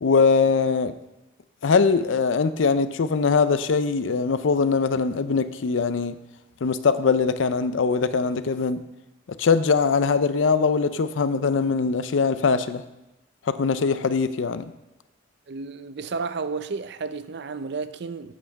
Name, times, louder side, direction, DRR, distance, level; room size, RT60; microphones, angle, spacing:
voice 1, 0.0-0.9 1.6-6.2 6.6-8.8 9.4-12.8 13.5-14.7, left 5 dB, 85° left, 0.5 m, -22 dB
voice 2, 15.5-18.3, right 4 dB, 60° right, 0.5 m, -32 dB
8.7 x 5.8 x 6.5 m
head